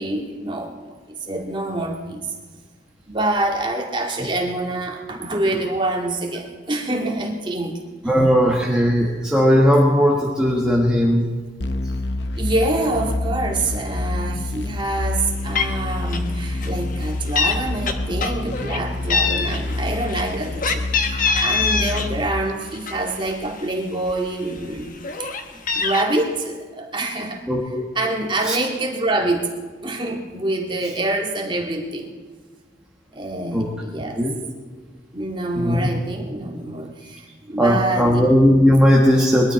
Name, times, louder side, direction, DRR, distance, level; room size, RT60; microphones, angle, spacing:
voice 1, 0.0-2.3 3.1-7.8 8.0-8.1 12.4-24.9 25.2-25.3 25.7-27.5 28.0-29.6 29.8-32.1 33.1-34.2 35.1-38.3, right 2 dB, 25° right, 0 dB, 2.2 m, -26 dB
voice 2, 8.0-11.3 27.5-27.8 28.4-28.6 33.5-33.7 34.1-34.4 35.6-35.9 37.6-39.5, equal, 5° right, -3 dB, 1.4 m, -17 dB
sound 1, 11.6-22.3, left 2 dB, 60° left, 0.8 m, -27 dB
Meow, 15.2-15.3 15.5-15.8 16.1-16.3 16.6-17.6 17.9-18.8 19.1-22.1 22.5-23.6 24.1-24.2 24.5-26.0, left 5 dB, 45° left, 1.1 m, -24 dB
21.5 x 12.5 x 4.2 m, 1.5 s
head